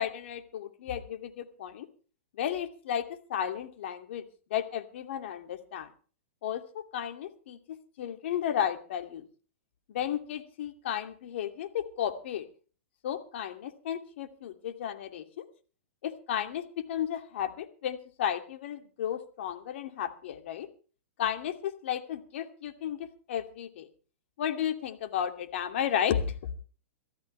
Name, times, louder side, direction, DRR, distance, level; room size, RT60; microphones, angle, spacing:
voice 1, 0.0-1.9 2.4-4.2 4.5-5.9 6.4-9.2 9.9-12.5 13.0-15.4 16.0-20.7 21.2-23.9 24.4-26.3, left 9 dB, 65° left, 7 dB, 2.6 m, -33 dB
23.5 x 15.0 x 3.3 m, 0.39 s
hypercardioid pair, 120°, 7 cm